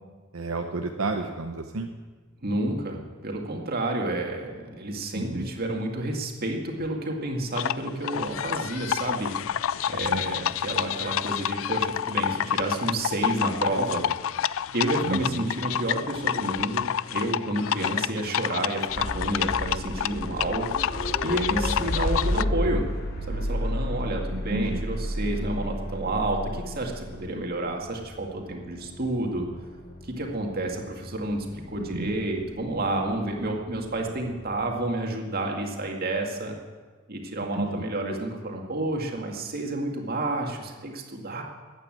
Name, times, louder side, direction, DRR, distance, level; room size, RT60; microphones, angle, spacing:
voice 1, 0.3-1.9 5.1-5.5 10.1-10.3 15.0-15.5 24.3-24.8 31.8-32.1 37.5-37.8, right 2 dB, 75° right, 4 dB, 0.9 m, -31 dB
voice 2, 2.4-14.1 14.7-20.7 21.2-22.8 23.3-29.5 30.0-36.6 37.1-41.4, right 1 dB, 45° right, 1 dB, 2.2 m, -30 dB
sound 1, 7.6-22.4, left 9 dB, 65° left, 0.4 m, -29 dB
sound 2, 18.9-34.8, left 1 dB, 45° left, 2.4 m, -33 dB
15.0 x 8.9 x 9.1 m, 1.4 s
head